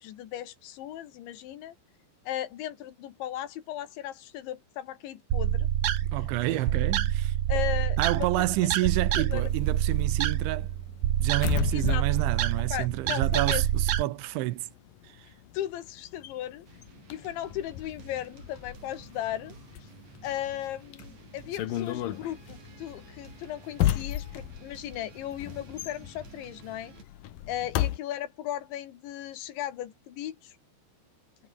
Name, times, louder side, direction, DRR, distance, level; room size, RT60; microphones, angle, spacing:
voice 1, 0.0-1.8 2.3-5.7 6.5-6.6 7.5-8.7 9.2-9.4 11.7-12.0 12.7-13.7 15.5-16.7 17.1-19.6 20.2-26.9 27.5-30.6, left 12 dB, 80° left, 4.2 m, -36 dB
sound 1, 5.3-14.0, right 12 dB, 65° right, 2.3 m, -27 dB
voice 2, 6.1-7.4 8.0-10.7 11.2-14.7, right 17 dB, 85° right, 3.5 m, -29 dB
sound 2, 9.4-13.8 14.1-28.0, left 13 dB, 65° left, 2.5 m, -35 dB
sound 3, 16.6-27.0, right 6 dB, 40° right, 3.7 m, -52 dB
omnidirectional pair, 5.2 m